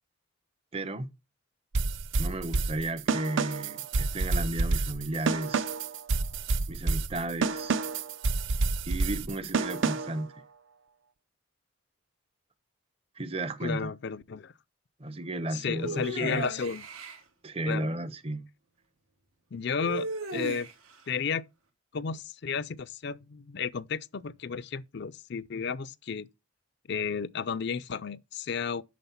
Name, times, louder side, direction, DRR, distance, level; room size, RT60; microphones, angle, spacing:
voice 1, 0.7-1.1 2.2-5.7 6.7-7.8 8.9-10.4 13.2-13.9 15.0-16.4 17.4-18.5, right 2 dB, 30° right, 0.7 m, -34 dB
sound 1, 1.7-10.2, right 3 dB, 65° right, 0.6 m, -29 dB
voice 2, 13.6-14.5 15.5-16.8 17.7-17.9 19.5-20.7 21.1-21.4 21.9-26.3 26.9-28.8, left 6 dB, 55° left, 0.4 m, -33 dB
sound 2, 15.8-17.2 19.8-20.9, right 3 dB, 85° right, 2.7 m, -36 dB
9.3 x 6.4 x 5.7 m
head